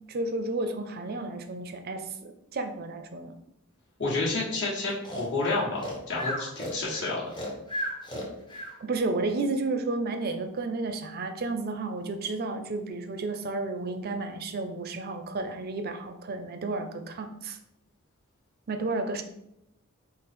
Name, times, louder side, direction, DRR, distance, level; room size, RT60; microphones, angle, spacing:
voice 1, 0.0-3.3 8.8-17.6 18.7-19.2, right 3 dB, 45° right, 7 dB, 0.5 m, -32 dB
voice 2, 4.0-7.3, left 3 dB, 55° left, -6 dB, 1.4 m, -30 dB
Breathing, 5.0-8.7, equal, 20° left, 0.8 m, -34 dB
5.2 x 2.0 x 4.2 m, 0.81 s
head